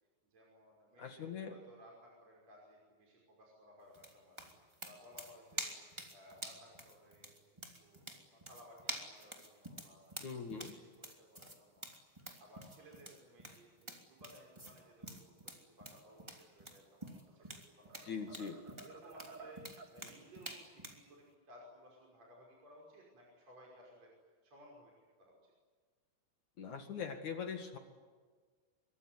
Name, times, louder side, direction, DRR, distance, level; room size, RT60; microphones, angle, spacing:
voice 1, 0.3-4.4 4.8-5.8 6.1-7.4 7.7-19.6 19.9-24.1 24.4-25.5, equal, 30° right, -2 dB, 6.4 m, -60 dB
voice 2, 1.0-1.5 10.2-10.8 18.0-18.6 26.6-27.8, left 6 dB, 55° left, 6 dB, 2.3 m, -42 dB
sound 1, 3.9-21.0, right 1 dB, 15° right, 1.2 m, -48 dB
sound 2, 17.1-17.5 17.9-20.0, right 4 dB, 70° right, 1.0 m, -54 dB
25.5 x 23.5 x 9.6 m, 1.5 s
omnidirectional pair, 5.9 m